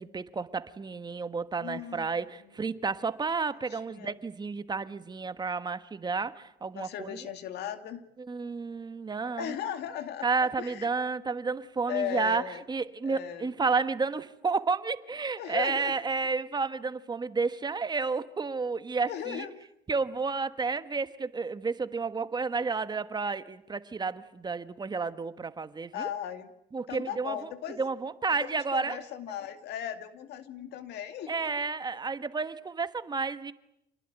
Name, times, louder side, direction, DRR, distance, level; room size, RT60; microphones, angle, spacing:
voice 1, 0.0-7.2 8.3-9.5 10.2-12.4 12.7-19.5 19.9-26.1 26.7-27.5 27.8-29.0 31.3-33.5, right 4 dB, 25° right, 12 dB, 1.3 m, -31 dB
voice 2, 1.6-2.3 3.7-4.2 6.7-8.0 9.3-10.9 11.9-12.6 13.0-13.5 15.4-15.9 19.1-19.5 25.9-26.5 26.9-27.8 28.4-31.7 31.9-32.0, left 10 dB, 75° left, 9 dB, 2.3 m, -37 dB
27.5 x 20.0 x 9.0 m, 0.82 s
cardioid pair, 110°, 17 cm